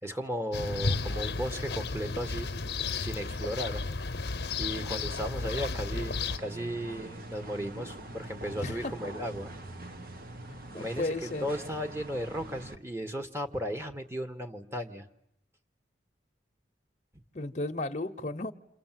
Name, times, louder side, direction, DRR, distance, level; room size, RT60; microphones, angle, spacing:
voice 1, 0.0-2.5 3.0-3.8 4.6-9.5 10.7-15.0, equal, 15° right, 1.7 m, -35 dB
sound 1, 0.5-6.4, left 4 dB, 65° left, 1.0 m, -33 dB
sound 2, 6.3-12.7, right 1 dB, 55° right, 1.6 m, -44 dB
voice 2, 8.5-8.9 10.5-11.5 17.3-18.5, left 2 dB, 40° left, 1.0 m, -34 dB
29.5 x 26.5 x 7.7 m
head